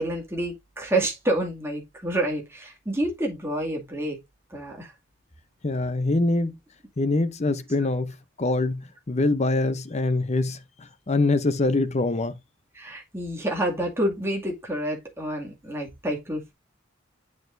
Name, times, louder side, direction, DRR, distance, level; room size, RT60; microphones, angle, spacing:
voice 1, 0.0-4.2 4.5-4.9 12.7-16.5, right 1 dB, 15° right, 2.2 m, -28 dB
voice 2, 5.6-6.5 7.0-12.3, left 2 dB, 35° left, 0.7 m, -24 dB
8.4 x 6.8 x 2.6 m
head